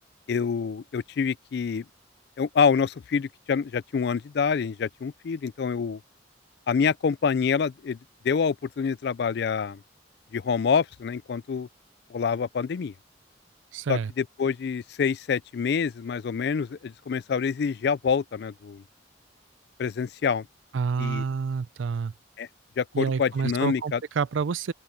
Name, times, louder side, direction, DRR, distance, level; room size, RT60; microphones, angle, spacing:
voice 1, 0.3-1.8 2.4-6.0 6.7-8.0 8.2-9.8 10.3-11.7 12.1-12.9 13.9-18.8 19.8-20.5 21.0-21.2 22.4-22.5 22.8-24.0, left 6 dB, 60° left, 0.3 m, -26 dB
voice 2, 13.7-14.1 20.7-22.1 22.9-24.7, right 5 dB, 85° right, 0.4 m, -28 dB
open air
head